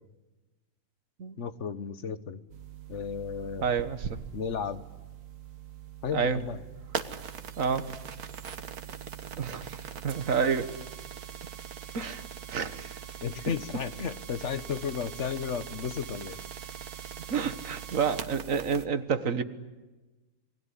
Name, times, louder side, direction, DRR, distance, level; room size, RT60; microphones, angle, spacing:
voice 1, 1.4-2.4 2.9-3.6 4.3-4.8 6.0-6.6 13.2-16.4, left 7 dB, 55° left, 13 dB, 1.4 m, -33 dB
sound 1, 2.5-18.8, right 7 dB, 90° right, 1.9 m, -41 dB
voice 2, 3.6-4.2 6.1-6.4 7.6-7.9 9.4-10.8 11.9-12.2 12.5-13.0 17.3-19.4, right 6 dB, 65° right, 11 dB, 1.8 m, -29 dB
28.0 x 20.5 x 9.8 m, 1.2 s
omnidirectional pair, 1.5 m